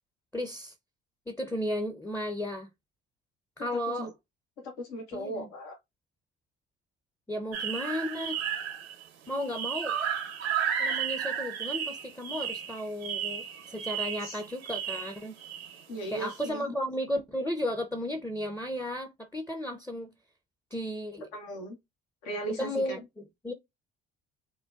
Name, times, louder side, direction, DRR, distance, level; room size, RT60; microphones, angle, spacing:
voice 1, 0.3-0.7 1.3-2.7 3.6-4.1 5.1-5.5 7.3-8.4 9.3-10.0 10.8-15.4 16.1-20.1 20.7-21.3 22.6-23.5, equal, 5° left, 0.5 m, -34 dB
voice 2, 4.6-5.8 14.2-14.4 15.9-16.7 21.3-21.8 22.2-23.0, right 1 dB, 75° left, 0.9 m, -37 dB
sound 1, 7.5-9.0 9.3-15.8 16.3-16.5, right 8 dB, 85° right, 0.8 m, -33 dB
3.7 x 2.2 x 2.3 m
hypercardioid pair, 50°, 32 cm